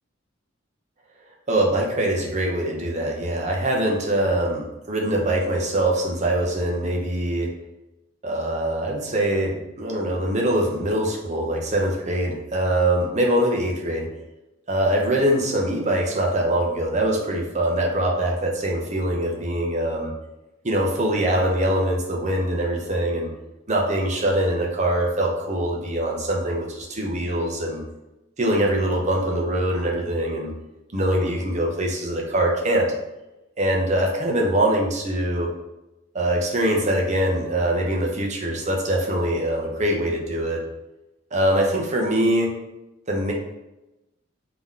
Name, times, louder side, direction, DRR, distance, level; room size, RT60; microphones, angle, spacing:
voice 1, 1.5-7.5 8.2-14.1 14.7-20.1 20.6-23.3 23.7-27.8 28.4-30.5 30.9-32.9 33.6-35.5 36.1-40.6 41.3-42.5 43.1-43.3, right 1 dB, 35° right, 0 dB, 0.8 m, -23 dB
3.7 x 2.9 x 3.6 m, 0.97 s
head